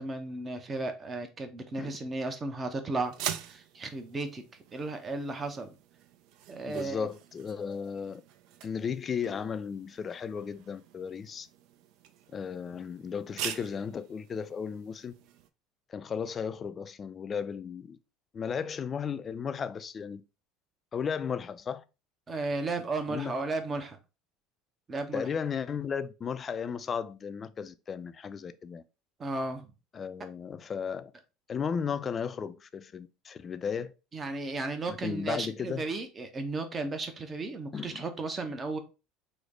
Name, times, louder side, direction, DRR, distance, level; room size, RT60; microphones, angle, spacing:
voice 1, 0.0-3.1 3.5-4.4 4.7-5.7 6.5-7.1 22.3-24.0 24.9-25.3 29.2-29.7 34.1-38.8, right 3 dB, 30° right, 0.7 m, -34 dB
sound 1, 3.0-15.5, right 10 dB, 65° right, 0.3 m, -44 dB
voice 2, 6.7-8.2 8.6-11.5 12.3-15.1 15.9-18.0 18.3-20.2 20.9-21.8 23.1-23.3 25.1-28.8 29.9-31.1 31.5-33.9 34.9-35.8 37.7-38.0, left 6 dB, 35° left, 0.3 m, -35 dB
3.2 x 2.1 x 3.6 m
hypercardioid pair, 75°, 0 cm